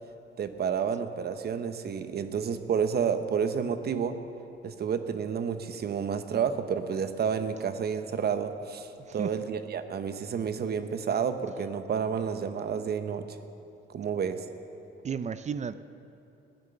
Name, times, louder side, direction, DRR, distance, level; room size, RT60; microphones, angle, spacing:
voice 1, 0.4-4.1 4.6-13.4 13.9-14.4, right 7 dB, 55° right, 9 dB, 0.9 m, -30 dB
voice 2, 15.0-15.8, right 7 dB, 35° right, 14 dB, 0.5 m, -33 dB
15.0 x 10.5 x 6.7 m, 2.8 s
cardioid pair, 90°, 20 cm